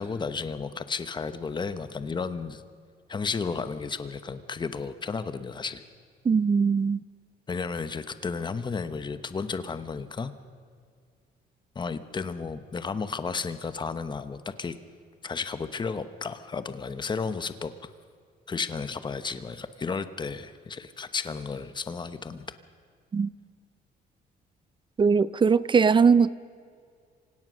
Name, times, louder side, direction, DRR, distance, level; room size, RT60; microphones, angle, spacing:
voice 1, 0.0-2.6 3.1-5.8 7.5-10.3 11.7-14.7 15.2-17.9 18.5-22.6, left 5 dB, 25° left, 12 dB, 1.0 m, -33 dB
voice 2, 6.3-7.0 23.1-23.3 25.0-26.3, right 5 dB, 30° right, 18 dB, 0.5 m, -20 dB
26.5 x 17.0 x 6.4 m, 2.1 s
cardioid pair, 115°, 17 cm